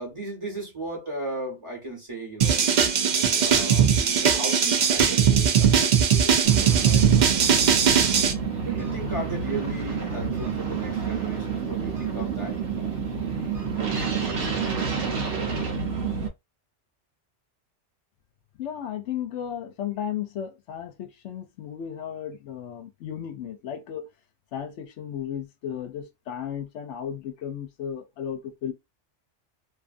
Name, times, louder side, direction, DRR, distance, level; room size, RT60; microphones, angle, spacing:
voice 1, 0.0-2.9 3.4-8.2 8.6-12.6, right 1 dB, 25° right, 1.3 m, -36 dB
sound 1, 2.4-8.3, right 7 dB, 55° right, 0.5 m, -20 dB
sound 2, 6.4-16.3, right 6 dB, 75° right, 1.0 m, -29 dB
voice 2, 18.6-24.1 24.5-28.7, left 9 dB, 75° left, 0.9 m, -34 dB
2.6 x 2.4 x 2.4 m
omnidirectional pair, 1.2 m